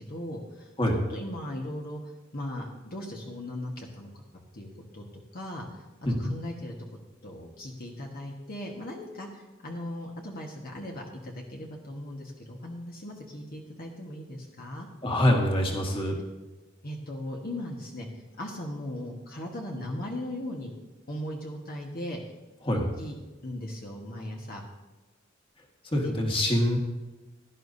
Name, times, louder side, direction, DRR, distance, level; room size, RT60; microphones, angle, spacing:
voice 1, 0.0-0.7 1.1-4.2 4.5-4.7 4.9-5.0 5.3-5.8 6.2-6.7 7.2-14.9 16.8-18.1 18.4-20.7 21.1-22.2 23.0-23.2 23.4-24.6 26.0-26.1, left 1 dB, 50° left, -1 dB, 1.5 m, -38 dB
voice 2, 15.0-16.2 22.6-22.9 25.9-26.8, left 1 dB, 25° left, 1 dB, 1.8 m, -25 dB
17.0 x 11.5 x 2.7 m, 1.1 s
head